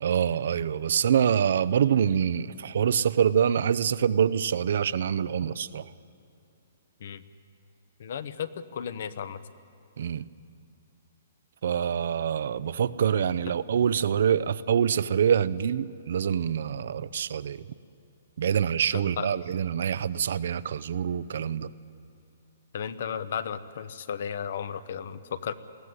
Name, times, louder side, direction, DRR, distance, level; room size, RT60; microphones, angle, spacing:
voice 1, 0.0-5.9 10.0-10.3 11.6-17.6 18.4-21.7, right 8 dB, 60° right, 0.6 m, -25 dB
voice 2, 8.0-9.4 18.9-19.3 22.7-25.5, left 8 dB, 55° left, 0.9 m, -34 dB
21.0 x 15.0 x 9.7 m
hypercardioid pair, 170°, 0 cm